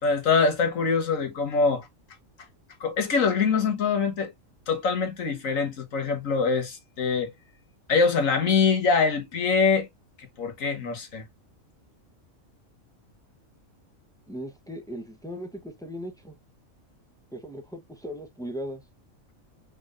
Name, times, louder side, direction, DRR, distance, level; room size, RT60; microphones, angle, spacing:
voice 1, 0.0-1.9 2.8-4.3 4.7-7.3 7.9-9.9 10.4-11.2, left 5 dB, 75° left, 1.7 m, -24 dB
voice 2, 14.3-16.3 17.3-18.8, equal, 5° left, 0.9 m, -38 dB
5.3 x 3.7 x 2.5 m
omnidirectional pair, 1.4 m